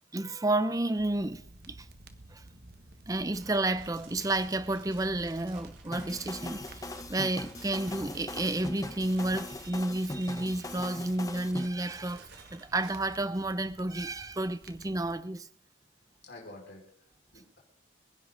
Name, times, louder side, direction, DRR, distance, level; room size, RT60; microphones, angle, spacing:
voice 1, 0.1-1.9 2.3-2.4 3.1-15.5, right 2 dB, 20° right, 0.6 m, -31 dB
sound 1, 1.0-15.1, right 1 dB, 50° right, 1.5 m, -52 dB
Crumpling crinkling, 3.1-13.1, right 5 dB, 80° right, 7.0 m, -54 dB
sound 2, 5.9-11.7, left 2 dB, 20° left, 0.8 m, -40 dB
voice 2, 16.2-17.6, left 2 dB, 55° left, 4.9 m, -50 dB
28.5 x 11.0 x 3.9 m
head